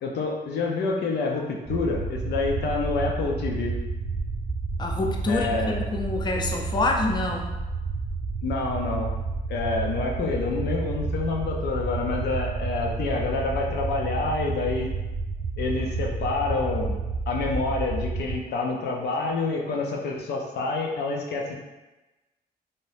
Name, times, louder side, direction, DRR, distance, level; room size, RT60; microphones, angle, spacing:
voice 1, 0.0-3.7 5.3-5.9 8.4-9.1 9.5-14.9 15.6-21.6, left 3 dB, 80° left, 0 dB, 0.5 m, -28 dB
sound 1, 1.6-18.4, right 3 dB, 50° right, 0.6 m, -30 dB
voice 2, 4.8-7.5, left 2 dB, 25° left, 1 dB, 0.4 m, -26 dB
2.7 x 2.2 x 3.2 m, 1.1 s
cardioid pair, 70°, 17 cm